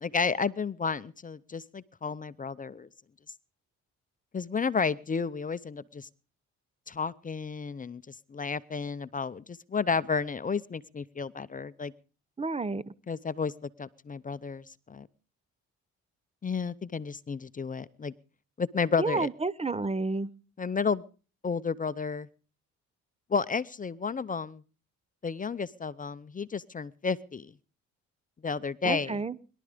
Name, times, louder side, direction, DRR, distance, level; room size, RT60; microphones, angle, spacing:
voice 1, 0.0-2.9 4.3-6.1 6.9-11.9 13.1-15.1 16.4-18.1 18.6-19.3 20.6-21.0 21.4-22.3 23.3-24.6 25.2-27.5 28.4-29.2, left 5 dB, 25° left, 17 dB, 0.7 m, -32 dB
voice 2, 12.4-12.9 19.0-20.3 28.8-29.4, right 3 dB, 20° right, 18 dB, 0.7 m, -30 dB
22.0 x 12.0 x 5.1 m, 0.39 s
cardioid pair, 90°, 30 cm